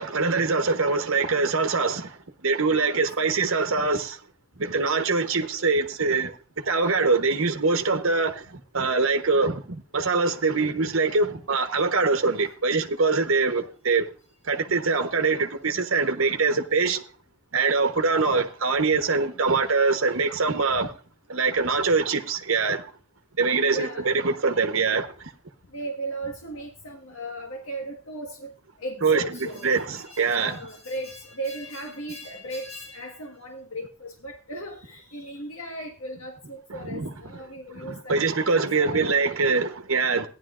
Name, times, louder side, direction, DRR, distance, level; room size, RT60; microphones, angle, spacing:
voice 1, 0.0-2.2 2.4-4.2 4.6-6.3 6.6-14.1 14.4-17.0 17.5-20.9 21.3-22.8 23.4-25.1 29.0-29.2 29.6-30.6 36.9-37.1 38.1-40.3, right 4 dB, 75° right, 1.0 m, -23 dB
voice 2, 2.7-3.5 6.8-7.2 20.7-20.9 23.7-24.1 25.7-28.5 28.8-38.2 38.5-39.1, right 1 dB, 80° left, 1.5 m, -37 dB
15.0 x 10.5 x 2.5 m
head